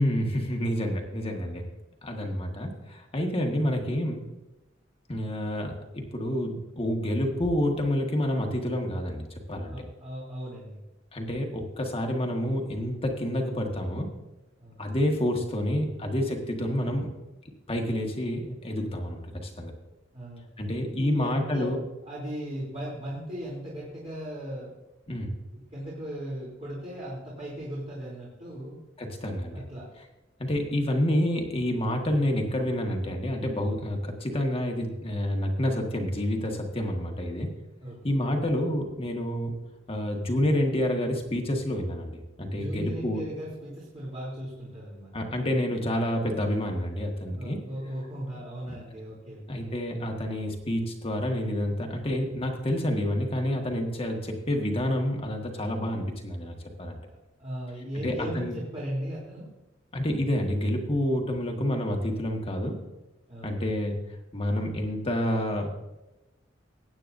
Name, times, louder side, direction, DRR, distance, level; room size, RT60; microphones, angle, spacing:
voice 1, 0.0-1.6 2.0-4.2 5.1-9.7 11.1-14.1 14.8-17.1 17.7-19.7 20.6-21.8 25.1-25.3 29.0-29.6 30.4-37.5 38.0-39.5 39.9-43.2 45.1-47.6 49.5-57.0 58.0-58.5 59.9-62.8 63.4-64.0 64.3-65.8, left 1 dB, 30° left, 2 dB, 1.7 m, -28 dB
voice 2, 1.4-1.7 9.7-10.8 14.6-14.8 20.1-20.4 20.9-21.7 22.1-24.7 25.5-28.8 29.5-29.9 37.8-38.0 42.5-45.1 47.3-49.7 57.1-59.5 63.3-63.5, equal, 35° right, -7 dB, 3.2 m, -37 dB
20.0 x 9.0 x 2.7 m, 1.0 s
head